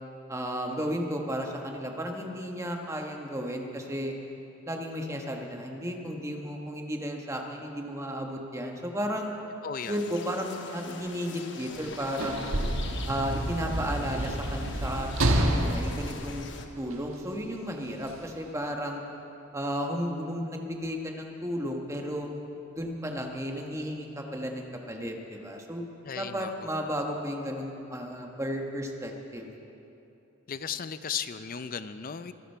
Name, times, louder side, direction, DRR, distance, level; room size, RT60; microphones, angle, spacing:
voice 1, 0.3-4.1 4.7-9.3 9.9-12.5 13.1-16.5 16.8-19.0 19.5-22.3 22.7-25.9 26.1-29.5, equal, 15° right, 2 dB, 1.2 m, -33 dB
voice 2, 9.6-10.0 26.0-26.7 30.5-32.3, left 7 dB, 40° left, 12 dB, 0.5 m, -36 dB
sound 1, 9.8-16.7, left 4 dB, 55° left, 1.0 m, -44 dB
Sliding door / Slam, 11.7-17.1 18.0-18.2, right 1 dB, 85° right, 1.3 m, -29 dB
23.5 x 11.0 x 4.5 m, 2.9 s
head